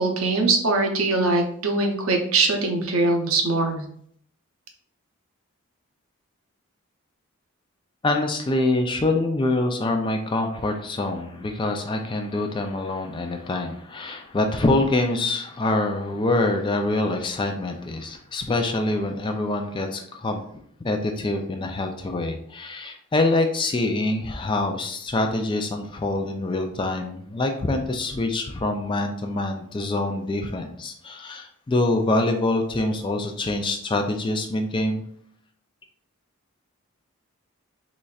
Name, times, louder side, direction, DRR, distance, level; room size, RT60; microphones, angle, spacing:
voice 1, 0.0-3.8, right 3 dB, 75° right, 3 dB, 0.7 m, -22 dB
voice 2, 8.0-20.4 20.8-35.0, left 2 dB, 20° left, 4 dB, 0.3 m, -25 dB
3.9 x 3.1 x 2.3 m, 0.64 s
head